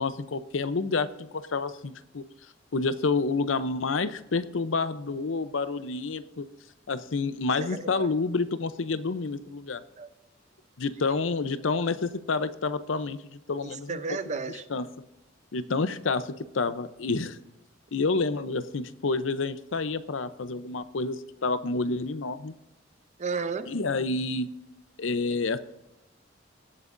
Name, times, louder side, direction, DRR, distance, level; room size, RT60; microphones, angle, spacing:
voice 1, 0.0-2.2 2.7-6.5 6.9-9.8 10.8-14.0 14.7-14.8 15.5-17.4 17.9-22.5 23.7-24.5 25.0-25.6, left 3 dB, 80° left, 13 dB, 0.7 m, -29 dB
voice 2, 7.6-8.1 10.0-10.1 13.6-14.7 23.2-23.7, right 4 dB, 40° right, 11 dB, 0.7 m, -33 dB
18.5 x 8.1 x 2.6 m, 0.90 s
head